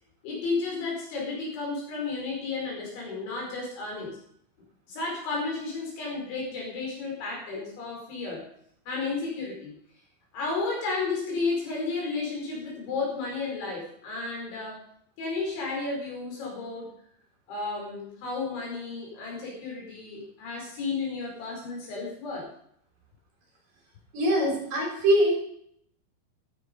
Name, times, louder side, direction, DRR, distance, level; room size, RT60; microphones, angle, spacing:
voice 1, 0.2-4.2 4.9-8.4 8.9-9.7 10.3-14.8 15.2-16.9 17.5-22.5, left 3 dB, 75° left, -2 dB, 7.4 m, -32 dB
voice 2, 24.1-25.3, equal, 45° right, -1 dB, 5.4 m, -23 dB
14.5 x 13.0 x 5.4 m, 0.68 s
omnidirectional pair, 5.4 m